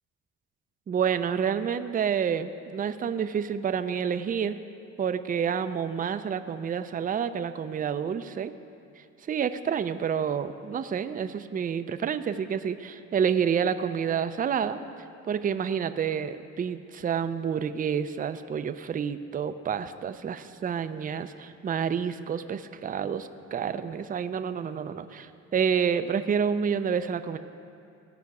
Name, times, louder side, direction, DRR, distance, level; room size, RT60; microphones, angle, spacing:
voice 1, 0.9-4.6 5.0-8.5 9.3-14.8 15.3-27.4, right 7 dB, 30° right, 11 dB, 0.4 m, -29 dB
16.5 x 5.8 x 4.7 m, 2.5 s
cardioid pair, 90°, 30 cm